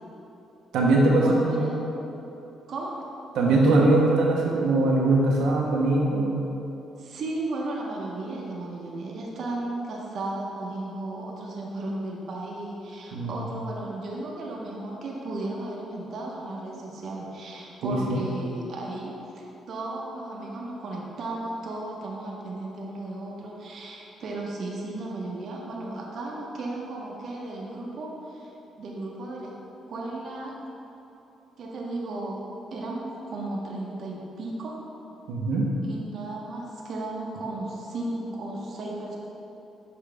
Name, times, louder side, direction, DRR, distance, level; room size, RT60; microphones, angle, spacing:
voice 1, 0.7-1.7 3.3-6.4 13.1-13.4 17.8-18.2 35.3-35.7, right 2 dB, 85° right, -3 dB, 0.9 m, -21 dB
voice 2, 1.2-1.8 2.7-2.9 7.0-28.5 28.8-29.5 29.9-30.5 31.6-32.4 32.7-34.8 35.8-39.2, right 2 dB, 60° right, -2 dB, 0.9 m, -35 dB
6.9 x 4.9 x 3.4 m, 3.0 s
cardioid pair, 90°, 0 cm